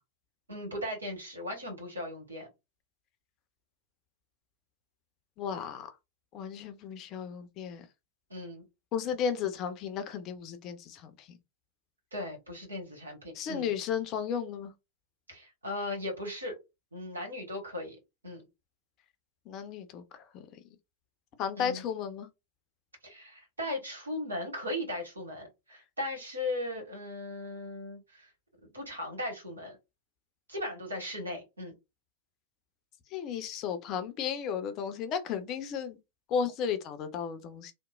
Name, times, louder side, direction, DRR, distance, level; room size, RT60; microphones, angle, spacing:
voice 1, 0.5-2.5 8.3-8.6 12.1-13.7 15.3-16.5 16.9-18.0 18.2-18.4 21.6-21.8 23.0-28.3 28.6-29.8 30.5-31.7, left 1 dB, 80° right, 1.2 m, -37 dB
voice 2, 5.4-5.9 6.3-7.9 8.9-11.4 13.3-14.7 19.5-20.4 21.4-22.3 33.1-36.0 36.3-37.7, left 7 dB, 35° left, 0.5 m, -34 dB
2.9 x 2.0 x 2.3 m
figure-of-eight pair, 90°, 0 cm